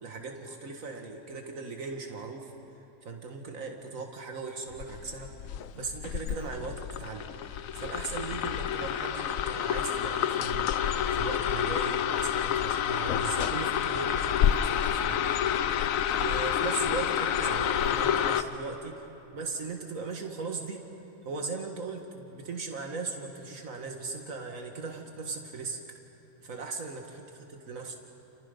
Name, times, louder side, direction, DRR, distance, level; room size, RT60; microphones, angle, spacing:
voice 1, 0.0-2.5 3.0-5.3 5.7-7.3 7.7-15.4 16.2-19.0 19.3-20.9 21.3-25.8 26.4-27.9, right 4 dB, 85° right, 2 dB, 2.1 m, -38 dB
sound 1, 4.7-18.4, left 9 dB, 90° left, 1.1 m, -29 dB
Liquid, 13.2-16.9 17.5-17.9, equal, 15° left, 6.6 m, -52 dB
29.5 x 28.5 x 5.4 m, 3.0 s
omnidirectional pair, 1.4 m